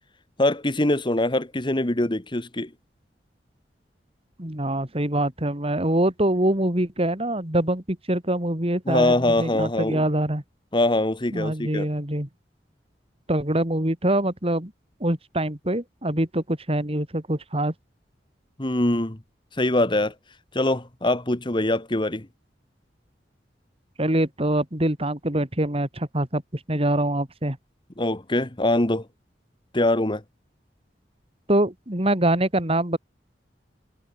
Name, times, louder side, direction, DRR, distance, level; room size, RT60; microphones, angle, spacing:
voice 1, 0.4-2.7 8.9-10.0 10.7-11.9 18.6-19.2 19.6-20.1 20.5-22.3 28.0-29.1 29.7-30.2, left 1 dB, 25° left, 1.7 m, -23 dB
voice 2, 4.4-10.4 11.3-12.3 13.3-14.7 15.0-17.7 24.0-27.6 31.5-33.0, right 1 dB, 35° right, 3.2 m, -24 dB
head